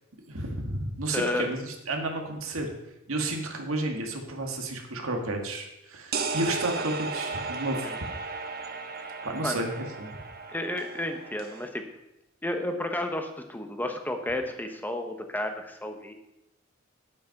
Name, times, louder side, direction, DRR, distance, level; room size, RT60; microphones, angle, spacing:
voice 1, 0.3-2.7 3.1-7.9 9.2-10.1, right 2 dB, 85° right, 2 dB, 1.9 m, -31 dB
voice 2, 1.1-1.5 7.8-8.0 9.4-9.6 10.5-11.8 12.4-16.1, left 1 dB, 10° left, 5 dB, 1.0 m, -31 dB
sound 1, 6.1-11.7, right 4 dB, 50° right, 1.0 m, -35 dB
9.3 x 8.5 x 5.9 m, 0.90 s
head